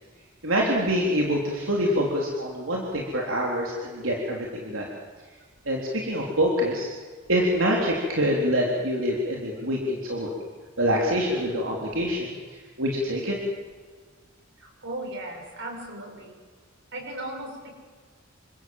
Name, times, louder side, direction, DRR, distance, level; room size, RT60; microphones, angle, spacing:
voice 1, 0.4-4.9 5.7-6.9 7.3-10.3 10.8-12.4 12.8-13.4, equal, 85° right, -2 dB, 3.7 m, -25 dB
voice 2, 14.6-16.4 16.9-17.7, right 1 dB, 65° right, 2 dB, 6.9 m, -36 dB
28.5 x 26.5 x 7.9 m, 1.5 s
head